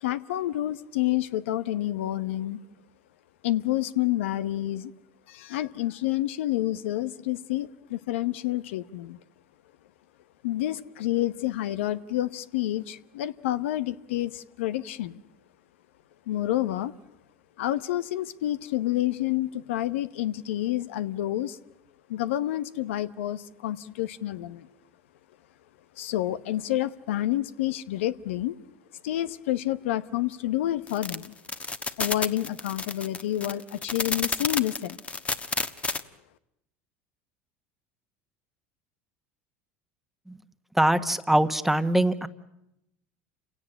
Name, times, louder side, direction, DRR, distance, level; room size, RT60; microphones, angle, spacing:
voice 1, 0.0-2.6 3.4-4.9 5.3-9.2 10.4-15.2 16.3-16.9 17.6-21.6 22.1-24.7 26.0-28.6 29.0-31.3 32.0-35.0, left 14 dB, 85° left, 14 dB, 0.9 m, -29 dB
sound 1, 30.9-36.0, left 4 dB, 20° left, 1.2 m, -30 dB
voice 2, 40.7-42.3, right 1 dB, 5° right, 10 dB, 1.4 m, -23 dB
28.5 x 17.5 x 9.9 m, 0.84 s
supercardioid pair, 95°, 6 cm